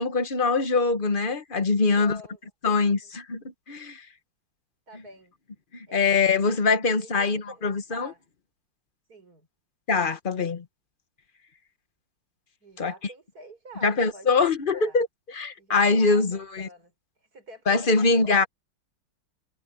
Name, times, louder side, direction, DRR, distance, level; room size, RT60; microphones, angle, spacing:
voice 1, 0.0-2.2 2.6-3.4 3.7-4.0 5.9-8.1 9.9-10.6 12.8-12.9 13.8-15.1 15.3-16.7 17.7-18.4, left 4 dB, 30° left, 1.1 m, -23 dB
voice 2, 1.9-2.4 4.9-5.3 5.9-6.5 6.8-8.3 9.1-9.5 12.6-14.4 14.7-15.0 15.6-16.9 17.2-18.5, right 1 dB, 45° right, 5.5 m, -47 dB
omnidirectional pair, 2.3 m